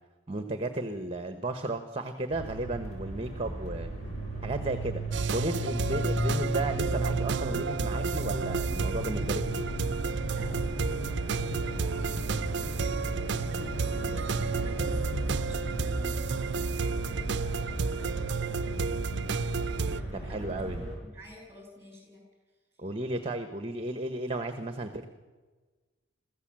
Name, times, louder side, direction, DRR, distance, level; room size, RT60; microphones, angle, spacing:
voice 1, 0.3-3.9 4.4-9.7 20.2-20.8 22.8-25.0, right 2 dB, 30° right, 8 dB, 1.1 m, -34 dB
sound 1, 2.3-21.0, right 1 dB, 35° left, 6.3 m, -35 dB
sound 2, 5.1-20.0, right 5 dB, 60° right, 0.5 m, -32 dB
voice 2, 10.3-22.2 22.8-22.9, left 1 dB, 15° right, 2 dB, 6.6 m, -50 dB
23.0 x 15.0 x 7.6 m, 1.3 s
head